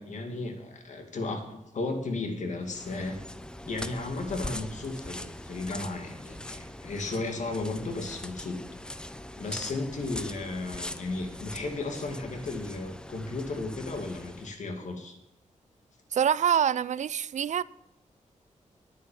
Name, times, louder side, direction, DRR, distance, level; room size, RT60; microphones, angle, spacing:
voice 1, 0.0-3.2 3.7-9.0 9.4-15.2, left 3 dB, 70° left, 2.3 m, -34 dB
sound 1, 2.6-14.6, left 1 dB, 5° left, 0.6 m, -42 dB
voice 2, 16.1-17.6, right 9 dB, 65° right, 0.4 m, -25 dB
10.5 x 9.4 x 7.4 m
wide cardioid pair, 140°, 13 cm